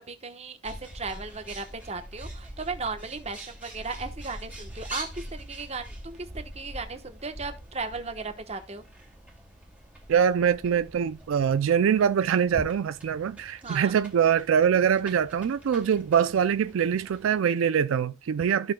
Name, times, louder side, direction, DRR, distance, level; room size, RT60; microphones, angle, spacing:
voice 1, 0.0-8.8 13.6-13.9, right 4 dB, 30° right, 1.0 m, -36 dB
Bird, 0.6-17.4, right 1 dB, 5° right, 2.0 m, -44 dB
voice 2, 10.1-18.7, right 8 dB, 75° right, 0.3 m, -23 dB
14.5 x 5.9 x 2.2 m
head